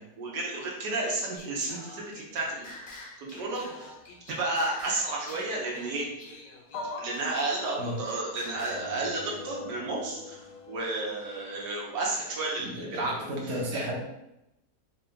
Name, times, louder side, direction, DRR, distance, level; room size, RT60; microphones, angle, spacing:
voice 1, 0.2-2.7 3.2-3.9 4.3-6.1 7.0-13.8, right 2 dB, 85° right, -3 dB, 1.5 m, -32 dB
Singing, 1.4-9.0, left 2 dB, 45° left, 0.6 m, -47 dB
sound 1, 3.4-4.4 4.8-5.0 5.8-5.9 6.7-12.5, left 3 dB, 80° left, 1.2 m, -45 dB
voice 2, 12.6-13.9, equal, 50° right, -2 dB, 1.0 m, -34 dB
4.2 x 2.3 x 3.7 m, 0.88 s
omnidirectional pair, 1.8 m